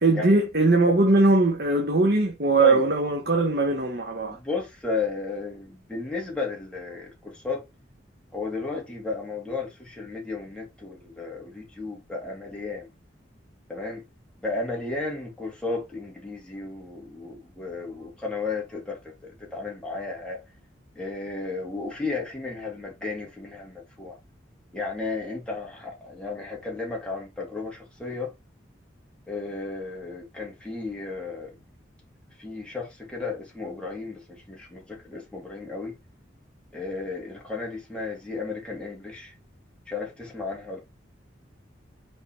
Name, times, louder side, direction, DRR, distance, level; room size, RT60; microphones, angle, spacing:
voice 1, 0.0-4.4, right 2 dB, 55° right, 1.3 m, -20 dB
voice 2, 4.3-7.6 8.3-12.9 13.7-14.0 14.4-20.4 21.0-24.2 24.7-28.3 29.3-31.5 32.4-36.0 36.7-39.3 39.9-40.8, left 3 dB, 5° left, 2.5 m, -33 dB
5.7 x 4.6 x 4.4 m
head